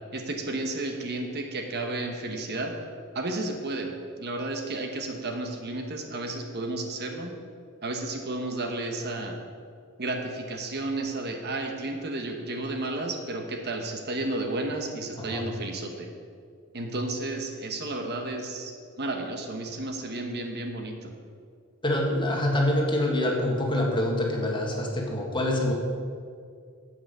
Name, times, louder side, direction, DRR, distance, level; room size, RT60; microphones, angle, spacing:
voice 1, 0.1-2.8 3.1-7.4 7.8-9.4 10.0-16.1 16.7-21.1, right 2 dB, 50° right, 4 dB, 1.1 m, -32 dB
voice 2, 21.8-25.7, left 1 dB, 25° left, -1 dB, 1.8 m, -26 dB
9.5 x 7.9 x 6.7 m, 2.2 s
head